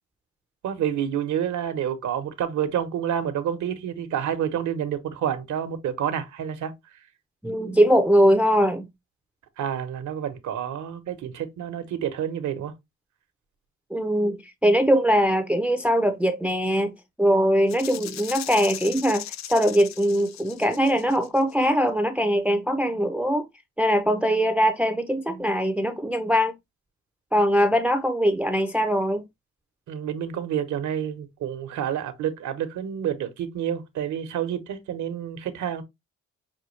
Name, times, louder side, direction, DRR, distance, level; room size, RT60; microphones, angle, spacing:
voice 1, 0.6-6.7 9.6-12.7 29.9-35.8, right 9 dB, 75° right, 1.0 m, -29 dB
voice 2, 7.4-8.9 13.9-23.5 23.8-26.5 27.3-29.2, equal, 5° right, 0.5 m, -21 dB
Rattle (instrument), 17.7-21.5, left 12 dB, 65° left, 0.5 m, -38 dB
6.0 x 2.3 x 3.2 m
cardioid pair, 90°, 30 cm